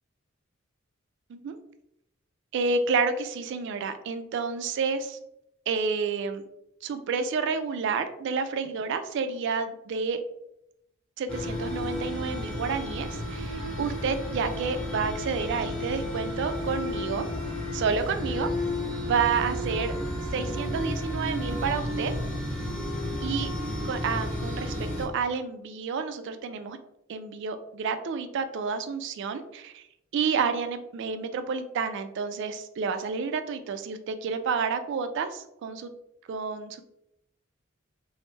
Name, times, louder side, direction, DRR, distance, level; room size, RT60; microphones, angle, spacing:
voice 1, 2.5-5.2 5.7-6.4 6.8-10.2 11.2-17.2 17.7-18.5 19.1-19.9 20.3-22.1 23.2-23.5 23.8-26.8 27.1-29.8 30.1-35.9 36.3-36.8, right 5 dB, 60° right, 10 dB, 0.3 m, -30 dB
sound 1, 11.3-25.1, left 1 dB, 5° left, 0.8 m, -32 dB
3.1 x 2.0 x 3.1 m, 0.81 s
head